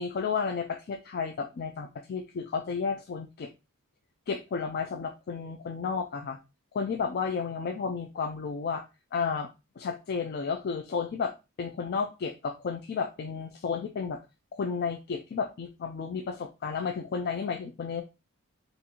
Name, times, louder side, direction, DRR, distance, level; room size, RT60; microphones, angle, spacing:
voice 1, 0.0-3.5 4.3-6.4 6.7-8.8 9.1-9.5 9.8-11.3 11.6-14.2 14.5-18.0, left 5 dB, 45° left, 5 dB, 0.3 m, -32 dB
4.0 x 2.5 x 2.7 m, 0.27 s
head